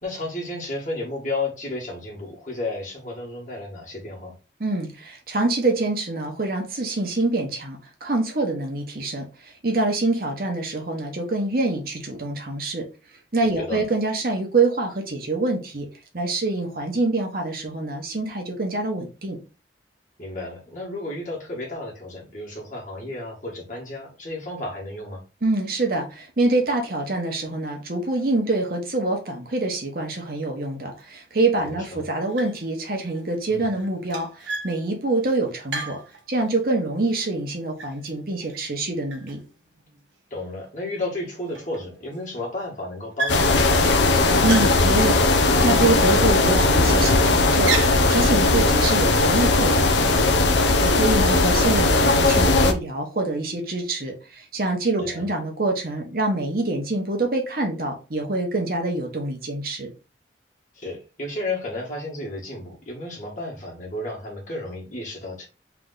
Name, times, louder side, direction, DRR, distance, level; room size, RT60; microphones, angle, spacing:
voice 1, 0.0-4.3 13.5-13.8 20.2-25.2 31.6-32.0 40.3-44.3 55.0-55.3 60.7-65.5, left 2 dB, 40° left, 1.6 m, -32 dB
voice 2, 4.6-12.8 13.3-15.9 16.1-19.4 25.4-36.0 36.3-39.4 44.4-50.4 50.8-59.9, right 2 dB, 50° right, 1.0 m, -25 dB
sound 1, 31.0-31.1 31.6-32.0 32.3-32.8 33.0-36.7 37.1-38.8 39.1-40.0 40.6-40.7 41.0-41.1 41.4-42.2 42.4-42.7 43.2-43.8 44.2-45.8 46.2-47.0 47.5-48.4, right 4 dB, 90° right, 1.0 m, -34 dB
sound 2, 43.3-52.7, left 2 dB, 80° left, 0.6 m, -18 dB
3.4 x 3.0 x 3.8 m
head